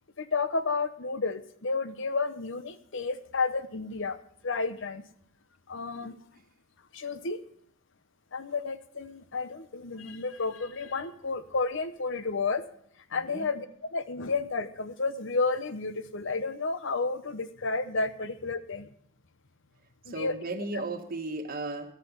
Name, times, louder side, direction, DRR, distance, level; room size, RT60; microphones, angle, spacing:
voice 1, 0.2-4.2 4.4-5.0 5.7-6.2 6.9-7.4 8.3-12.6 13.1-13.7 13.9-18.9 20.0-20.3, left 4 dB, 60° left, 12 dB, 0.9 m, -31 dB
voice 2, 13.1-13.5 20.1-21.9, right 2 dB, 45° right, 3 dB, 1.4 m, -35 dB
13.0 x 11.5 x 5.4 m, 0.66 s
head